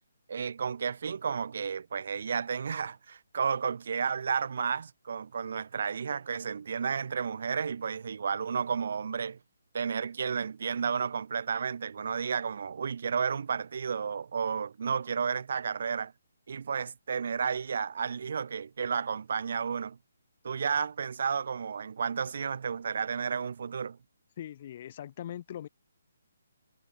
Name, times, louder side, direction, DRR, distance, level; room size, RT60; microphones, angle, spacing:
voice 1, 0.3-9.4 9.7-16.1 16.5-20.0 20.4-24.0, right 6 dB, 60° right, 5.7 m, -32 dB
voice 2, 24.4-25.7, left 11 dB, 40° left, 5.6 m, -41 dB
hypercardioid pair, 155°, 0 cm